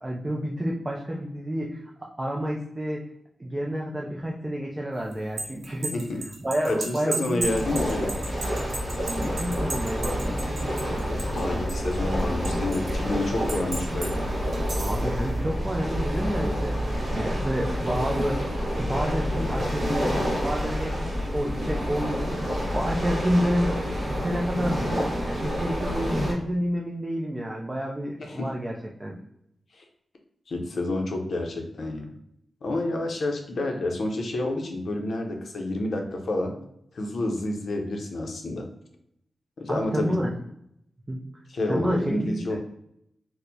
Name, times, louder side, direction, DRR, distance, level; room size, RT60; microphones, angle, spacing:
voice 1, 0.0-3.0 3.4-5.9 6.4-7.4 9.3-10.5 14.8-16.8 17.1-18.5 18.7-24.8 25.2-29.2 39.7-40.3 41.1-41.2 41.7-42.6, equal, 15° right, -2 dB, 0.3 m, -29 dB
sound 1, 5.1-11.4 11.7-12.9 13.5-14.1 14.5-15.0, right 3 dB, 70° right, 0.9 m, -34 dB
voice 2, 6.7-8.1 11.1-14.1 28.2-28.5 29.7-29.8 30.5-32.1 32.6-36.6 36.9-38.7 39.6-40.2 41.5-42.6, left 2 dB, 60° left, 3 dB, 0.5 m, -29 dB
sound 2, 7.4-26.3, equal, 40° right, 1.0 m, -28 dB
4.3 x 2.0 x 2.6 m, 0.76 s
wide cardioid pair, 175°, 0 cm